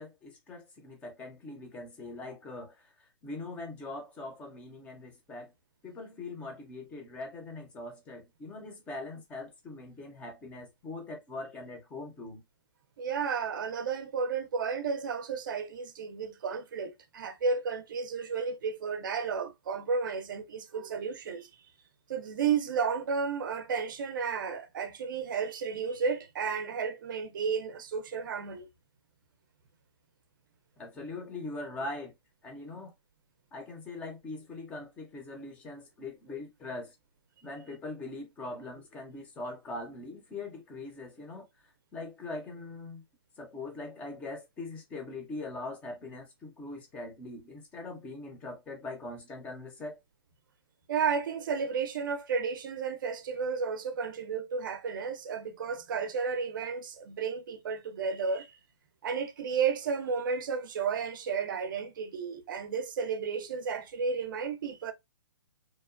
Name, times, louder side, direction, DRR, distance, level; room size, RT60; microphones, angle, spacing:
voice 1, 0.0-5.5 5.8-12.4 30.8-32.1 32.4-32.9 33.5-36.9 37.4-41.5 41.9-43.0 43.4-50.0, left 2 dB, 10° left, 0.5 m, -42 dB
voice 2, 13.0-21.5 22.1-28.7 50.9-58.6 59.0-64.9, right 5 dB, 50° right, 0.5 m, -32 dB
2.9 x 2.1 x 2.4 m
hypercardioid pair, 160°, 14 cm